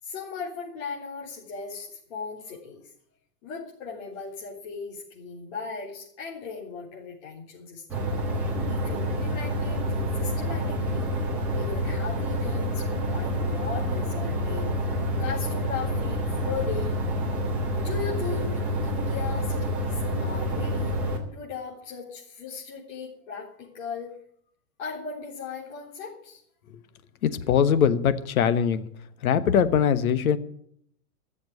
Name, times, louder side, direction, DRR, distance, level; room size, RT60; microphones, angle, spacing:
voice 1, 0.0-2.8 3.4-8.1 8.4-11.1 11.5-17.0 17.8-20.9 21.3-24.1 24.8-26.4, left 5 dB, 45° left, -7 dB, 3.9 m, -37 dB
sound 1, 7.9-21.2, equal, 5° right, 0.6 m, -28 dB
voice 2, 27.2-28.9 29.2-30.4, left 8 dB, 60° left, 13 dB, 1.3 m, -22 dB
13.5 x 7.3 x 9.5 m, 0.66 s
supercardioid pair, 175°, 47 cm